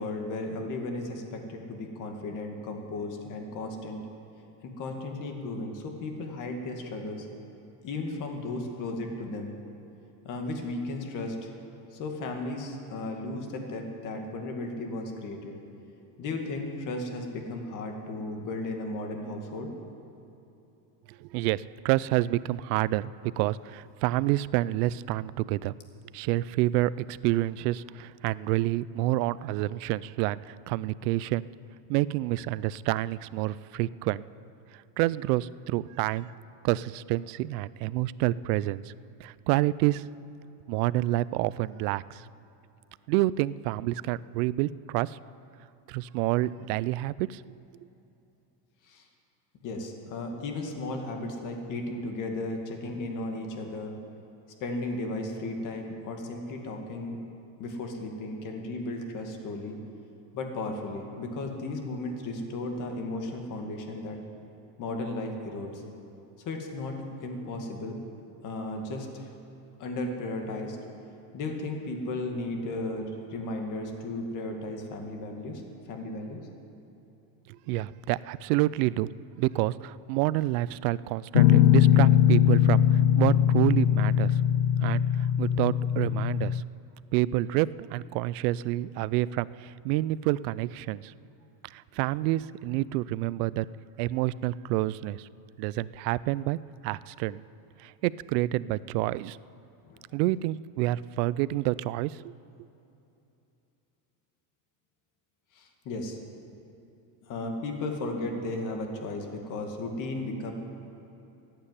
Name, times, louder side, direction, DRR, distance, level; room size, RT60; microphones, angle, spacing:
voice 1, 0.0-4.0 4.6-7.3 7.8-9.5 10.2-11.5 11.9-15.5 16.2-19.7 48.8-49.1 49.6-53.9 54.6-57.2 57.6-59.8 60.3-64.2 64.8-65.8 66.4-68.0 68.4-69.3 69.8-70.8 71.3-76.4 99.8-100.2 105.5-106.2 107.2-110.5, left 2 dB, 40° left, 3 dB, 2.1 m, -35 dB
voice 2, 21.2-25.7 26.1-31.5 31.9-34.2 35.0-36.3 36.6-38.9 39.2-40.0 40.7-42.3 43.1-45.2 45.9-47.4 77.7-79.1 79.4-84.4 84.8-85.0 85.4-86.6 87.1-91.1 91.7-93.7 94.0-95.3 95.6-97.4 97.8-99.4 100.1-102.3, right 16 dB, 70° right, 19 dB, 0.5 m, -28 dB
Guitar, 81.3-86.6, left 10 dB, 80° left, 0.6 m, -21 dB
14.5 x 9.0 x 9.8 m, 2.9 s
supercardioid pair, 155°, 49 cm